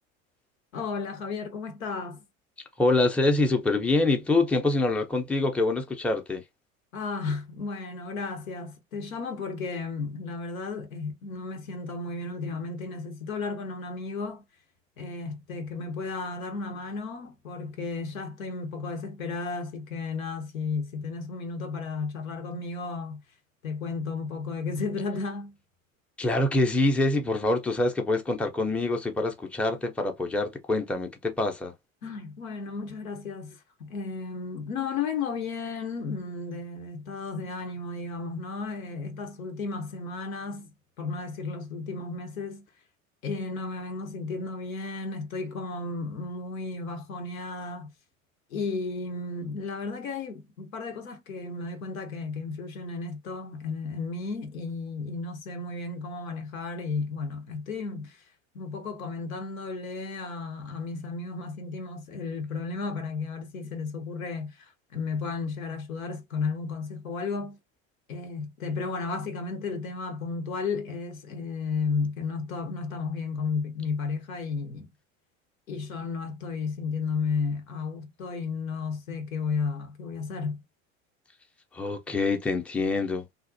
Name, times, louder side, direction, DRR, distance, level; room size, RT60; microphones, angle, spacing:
voice 1, 0.7-2.2 6.9-14.4 15.0-23.2 23.6-25.6 32.0-42.6 43.2-47.9 48.5-58.2 58.5-67.6 68.1-74.9 75.7-80.6, left 4 dB, 85° left, 0.8 m, -33 dB
voice 2, 2.8-6.4 26.2-31.7 81.7-83.3, left 2 dB, 5° left, 0.5 m, -25 dB
2.5 x 2.0 x 2.5 m
hypercardioid pair, 80°, 40 cm